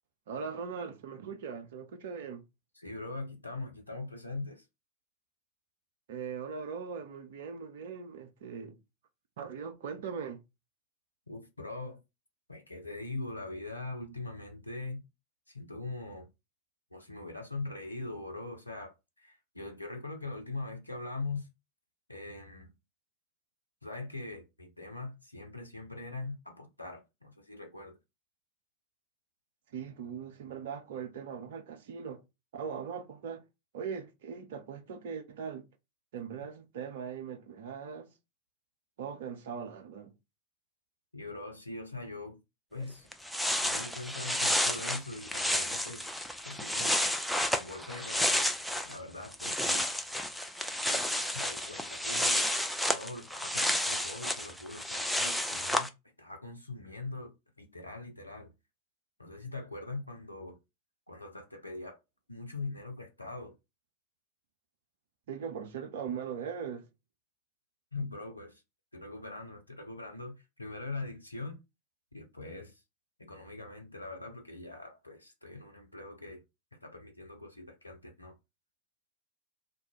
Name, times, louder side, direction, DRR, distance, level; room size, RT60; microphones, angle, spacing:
voice 1, 0.3-2.4 6.1-8.8 9.4-10.4 29.7-32.2 32.5-33.4 33.7-35.7 36.1-38.1 39.0-40.1 65.3-66.9, right 6 dB, 55° right, 0.5 m, -40 dB
voice 2, 2.8-4.6 11.3-12.0 12.5-15.0 15.5-16.3 16.9-21.5 22.1-22.7 23.8-28.0 41.1-42.4 42.7-43.1 43.5-46.1 46.4-47.1 47.6-48.5 48.9-49.9 50.9-52.5 52.8-55.9 56.2-57.3 57.6-58.5 59.2-60.6 61.1-62.0 62.3-63.5 67.9-68.6 68.9-71.6 72.1-72.8 73.2-76.4 76.8-78.3, left 2 dB, 85° left, 0.5 m, -42 dB
sound 1, 42.8-42.9 43.1-49.0 49.2-55.9, left 1 dB, ahead, 0.3 m, -31 dB
2.4 x 2.1 x 2.9 m
figure-of-eight pair, 90°, 0 cm